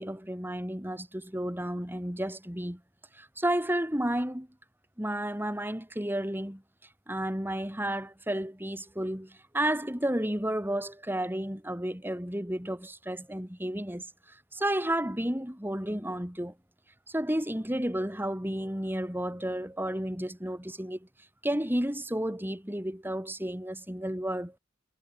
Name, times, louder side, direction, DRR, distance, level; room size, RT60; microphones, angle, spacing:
voice 1, 0.0-2.8 3.1-4.5 5.0-6.6 7.1-16.5 17.1-21.1 21.4-24.5, right 1 dB, 10° right, 5.2 m, -32 dB
head